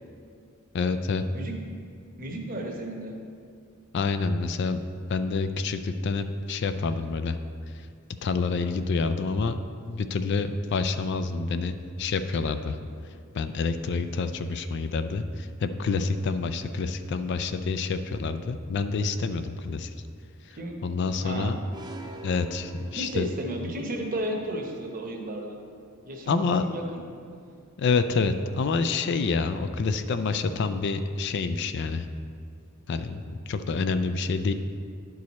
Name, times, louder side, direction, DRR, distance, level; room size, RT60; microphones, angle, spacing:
voice 1, 0.7-1.2 3.9-4.8 5.1-7.4 8.2-12.8 13.3-19.9 20.8-21.6 22.2-23.3 26.3-26.7 27.8-32.1 32.9-34.5, left 4 dB, 55° left, 10 dB, 0.4 m, -27 dB
voice 2, 2.2-3.1 20.6-20.7 21.2-21.6 22.9-25.6 26.0-27.0, right 1 dB, 40° right, 2 dB, 0.9 m, -33 dB
sound 1, 21.7-23.7, right 2 dB, 20° right, 0.4 m, -43 dB
10.5 x 4.7 x 4.1 m, 2.3 s
head